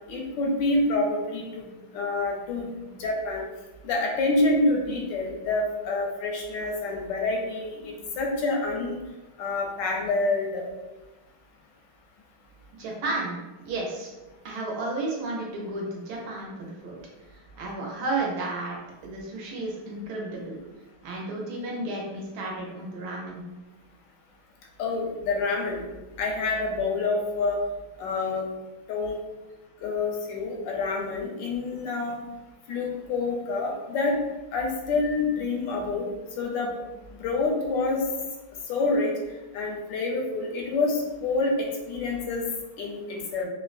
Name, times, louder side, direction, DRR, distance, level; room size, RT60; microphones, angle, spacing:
voice 1, 0.1-3.4 3.8-9.0 9.4-10.6 24.8-25.8 26.2-27.6 28.0-28.5 28.9-29.2 29.8-32.2 32.7-34.1 34.5-36.1 36.4-36.7 37.1-38.0 38.7-39.1 39.5-42.4 42.8-43.5, left 3 dB, 85° left, 0 dB, 1.3 m, -27 dB
voice 2, 12.8-14.1 14.4-17.0 17.6-18.8 19.0-20.6 21.0-23.4, right 2 dB, 70° right, -2 dB, 1.1 m, -32 dB
3.5 x 2.1 x 2.3 m, 1.1 s
omnidirectional pair, 1.9 m